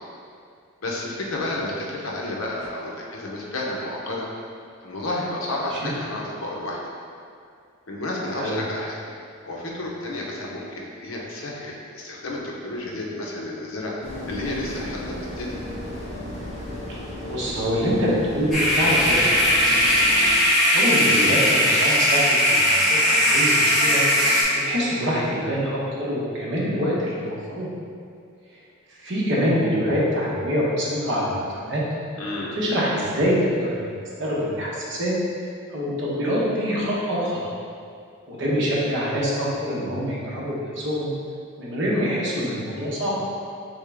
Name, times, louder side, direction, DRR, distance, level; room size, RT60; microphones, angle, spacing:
voice 1, 0.8-4.3 4.8-6.8 7.9-9.0 9.4-14.0 14.3-15.0 15.4-15.6 32.2-32.6, left 2 dB, 75° left, -2 dB, 0.7 m, -31 dB
sound 1, 14.0-20.4, left 1 dB, 30° left, 0.7 m, -34 dB
voice 2, 17.2-19.7 20.7-24.0 24.5-27.7 28.9-31.8 32.5-33.9 34.2-35.1 35.7-37.4 38.3-41.1 41.6-43.2, equal, 60° right, -6 dB, 1.0 m, -25 dB
sound 2, 18.5-24.4, equal, ahead, 1.2 m, -19 dB
3.6 x 3.5 x 3.4 m, 2.3 s
head